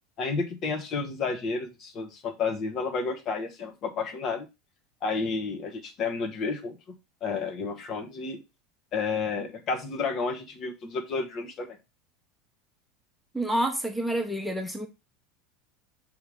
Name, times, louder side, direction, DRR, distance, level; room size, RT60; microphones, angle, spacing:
voice 1, 0.2-4.5 5.0-6.8 7.2-8.4 8.9-11.8, left 4 dB, 45° left, 1.7 m, -31 dB
voice 2, 13.3-14.9, right 1 dB, ahead, 1.2 m, -28 dB
6.9 x 3.6 x 5.2 m
figure-of-eight pair, 75°, 0 cm